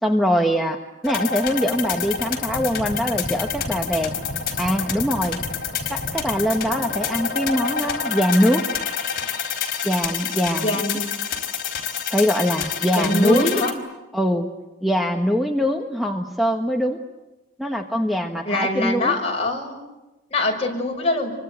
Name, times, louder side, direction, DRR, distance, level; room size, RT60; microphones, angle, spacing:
voice 1, 0.0-4.1 4.6-5.4 5.9-8.6 9.8-10.9 12.1-13.6 14.1-14.5 14.8-17.0 17.6-19.2, equal, ahead, 3 dB, 1.4 m, -22 dB
sound 1, 1.0-13.7, left 6 dB, 50° left, 4.4 m, -28 dB
voice 2, 10.6-11.1 13.0-13.7 18.5-19.8 20.3-21.3, left 2 dB, 35° left, 1 dB, 6.1 m, -23 dB
28.5 x 24.5 x 8.2 m, 1.1 s
head